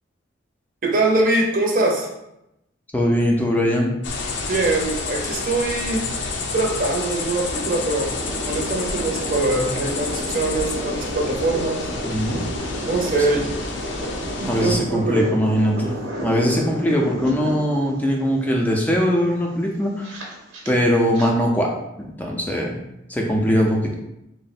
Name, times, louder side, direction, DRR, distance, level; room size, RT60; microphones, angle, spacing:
voice 1, 0.9-2.1 4.5-6.0 6.5-8.1 8.5-11.9 12.8-13.5 14.4-15.4, right 2 dB, 45° right, 0 dB, 0.6 m, -22 dB
voice 2, 2.9-3.9 12.0-12.4 13.2-13.3 14.5-15.9 16.2-20.2 20.7-21.7 22.2-22.8 23.1-23.8, equal, 10° left, -1 dB, 0.4 m, -21 dB
sound 1, 4.0-14.8, left 3 dB, 65° left, 0.4 m, -29 dB
sound 2, 7.5-21.3, right 1 dB, 85° right, 0.8 m, -33 dB
3.5 x 2.0 x 4.0 m, 0.88 s
head